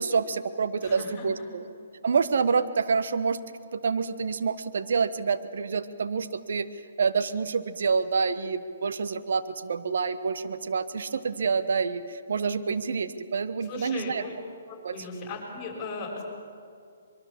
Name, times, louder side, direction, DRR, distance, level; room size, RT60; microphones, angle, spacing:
voice 1, 0.0-1.6 2.0-3.4 3.7-6.7 7.0-14.2 14.8-15.0, right 5 dB, 65° right, 11 dB, 1.2 m, -27 dB
voice 2, 0.8-1.3 13.7-14.3 14.7-16.2, left 4 dB, 20° left, -2 dB, 6.5 m, -37 dB
24.5 x 22.5 x 7.3 m, 2.4 s
figure-of-eight pair, 135°, 0 cm